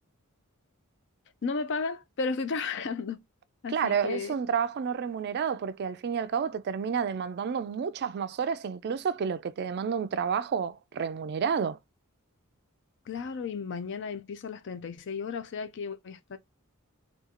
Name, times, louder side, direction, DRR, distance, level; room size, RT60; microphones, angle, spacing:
voice 1, 1.4-3.2 3.6-4.3 13.1-16.4, left 4 dB, 55° left, 0.4 m, -34 dB
voice 2, 3.7-11.8, right 7 dB, 50° right, 0.3 m, -30 dB
3.8 x 2.3 x 2.8 m
head